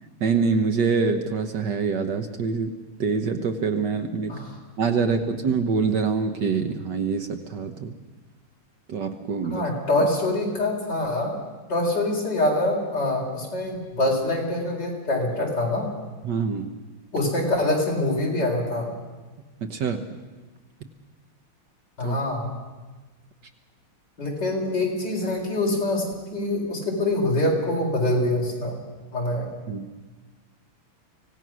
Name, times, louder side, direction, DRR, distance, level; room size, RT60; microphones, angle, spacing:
voice 1, 0.2-2.7 3.0-4.3 4.8-8.0 8.9-9.7 10.0-10.1 16.2-16.7 19.6-20.1 22.0-22.2 29.7-29.9, right 5 dB, 60° right, 7 dB, 1.5 m, -25 dB
voice 2, 9.5-11.3 11.7-15.9 17.1-18.9 22.0-22.5 24.2-26.0 26.3-28.8 29.1-29.5, left 1 dB, 50° left, -1 dB, 4.9 m, -24 dB
25.0 x 17.5 x 6.2 m, 1.3 s
omnidirectional pair, 2.3 m